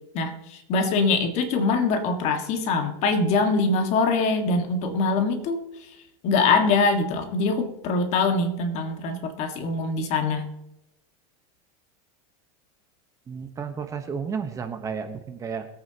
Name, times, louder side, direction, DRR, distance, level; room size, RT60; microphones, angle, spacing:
voice 1, 0.7-5.6 6.2-10.5, left 3 dB, 45° left, 6 dB, 1.8 m, -23 dB
voice 2, 13.3-15.7, right 6 dB, 20° right, 7 dB, 1.0 m, -32 dB
22.0 x 8.8 x 2.9 m, 0.91 s
supercardioid pair, 145°, 17 cm